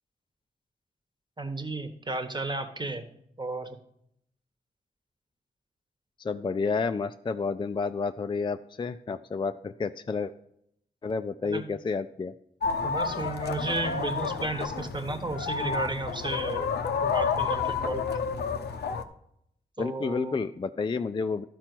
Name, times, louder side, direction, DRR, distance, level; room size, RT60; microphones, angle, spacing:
voice 1, 1.4-3.0 3.4-3.8 11.5-11.6 12.8-16.7 17.0-18.0 19.8-20.4, right 2 dB, 25° right, 7 dB, 1.2 m, -33 dB
voice 2, 6.2-10.3 11.0-12.3 19.8-21.4, left 4 dB, 30° left, 9 dB, 0.4 m, -30 dB
sound 1, 12.6-19.0, left 5 dB, 80° left, 0.6 m, -30 dB
12.0 x 4.4 x 6.1 m, 0.73 s
cardioid pair, 50°, 17 cm